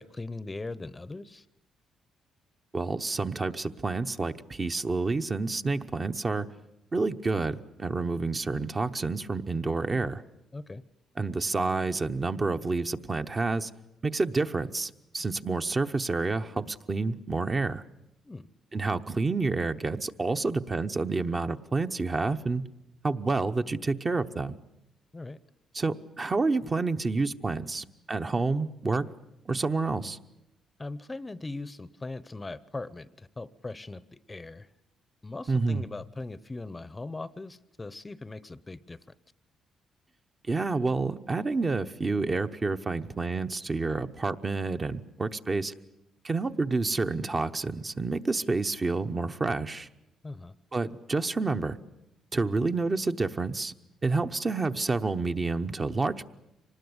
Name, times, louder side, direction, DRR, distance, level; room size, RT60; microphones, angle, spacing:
voice 1, 0.0-1.4 10.5-10.8 18.2-18.5 25.1-25.4 30.8-34.7 35.2-39.0 50.2-50.5, left 2 dB, 20° left, 17 dB, 0.7 m, -40 dB
voice 2, 2.7-6.5 6.9-10.2 11.2-13.7 14.0-17.8 18.7-22.6 23.0-24.6 25.7-29.1 29.5-30.2 35.5-35.8 40.5-45.7 46.2-49.9 50.7-51.8 52.3-53.7 54.0-56.3, right 3 dB, 30° right, 7 dB, 0.9 m, -29 dB
25.0 x 19.5 x 8.1 m, 0.91 s
cardioid pair, 90°, 0 cm